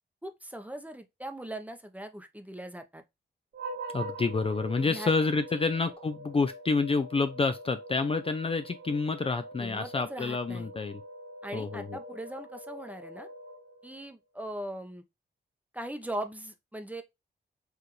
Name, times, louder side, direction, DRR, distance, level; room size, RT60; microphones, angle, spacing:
voice 1, 0.2-3.0 4.8-5.1 5.5-5.6 9.6-10.7 11.4-13.3 13.8-15.0 15.7-17.0, right 1 dB, 10° right, 0.7 m, -40 dB
sound 1, 3.5-14.1, right 1 dB, 80° right, 2.2 m, -44 dB
voice 2, 3.9-11.0 11.5-12.0, left 4 dB, 30° left, 0.5 m, -28 dB
4.8 x 2.5 x 3.0 m
cardioid pair, 65°, 18 cm